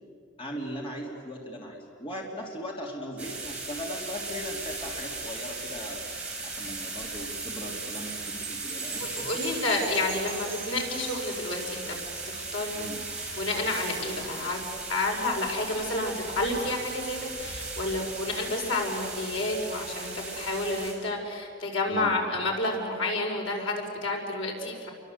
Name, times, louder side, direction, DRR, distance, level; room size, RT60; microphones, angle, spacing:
voice 1, 0.4-6.0 6.4-9.6 12.7-13.1 21.9-22.2, equal, 25° left, -1 dB, 3.0 m, -38 dB
sound 1, 3.2-20.9, right 3 dB, 5° right, 6.5 m, -37 dB
Wind chime, 6.4-12.0, right 6 dB, 30° right, 6.0 m, -45 dB
voice 2, 9.0-12.0 12.3-12.8 13.1-14.6 14.9-24.9, left 2 dB, 75° left, 0 dB, 5.6 m, -30 dB
29.5 x 23.5 x 8.0 m, 2.3 s
head